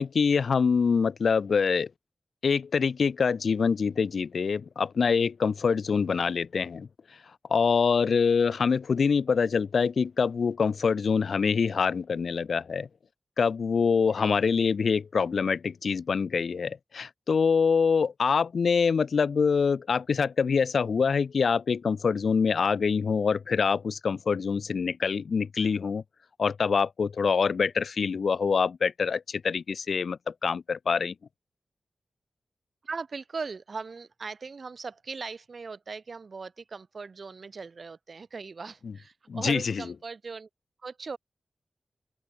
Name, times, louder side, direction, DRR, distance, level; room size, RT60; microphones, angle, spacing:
voice 1, 0.0-1.9 2.4-6.9 7.5-12.9 13.4-26.0 26.4-31.1 39.3-39.8, left 5 dB, 75° left, 1.0 m, -25 dB
voice 2, 32.8-40.5 40.8-41.2, right 4 dB, 55° right, 1.7 m, -39 dB
open air
wide cardioid pair, 95°, 0 cm